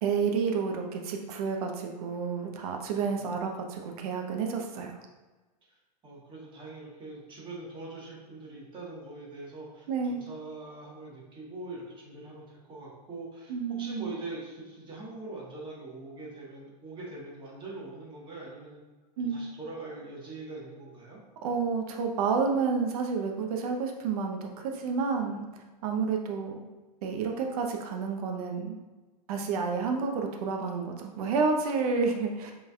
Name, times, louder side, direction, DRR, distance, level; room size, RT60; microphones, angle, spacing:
voice 1, 0.0-5.0 9.9-10.2 13.5-14.1 19.2-19.5 21.4-25.4 25.8-26.7 27.0-28.8 29.3-32.5, right 5 dB, 60° right, 3 dB, 0.8 m, -30 dB
voice 2, 6.0-18.8 19.2-21.2, right 2 dB, 25° right, -4 dB, 1.4 m, -43 dB
5.2 x 3.4 x 2.3 m, 1.2 s
hypercardioid pair, 125°, 21 cm